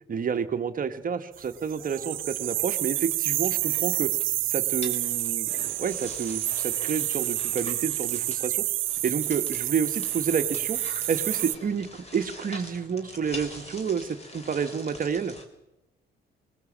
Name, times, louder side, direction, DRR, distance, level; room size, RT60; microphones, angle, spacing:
voice 1, 0.1-4.1 4.5-8.6 9.0-10.8 11.1-15.3, right 6 dB, 45° right, 8 dB, 1.4 m, -29 dB
sound 1, 1.7-11.5, right 15 dB, 85° right, 0.9 m, -29 dB
sound 2, 1.8-15.5, left 2 dB, 35° left, 3.7 m, -45 dB
20.5 x 18.0 x 7.3 m, 0.93 s
cardioid pair, 90°, 20 cm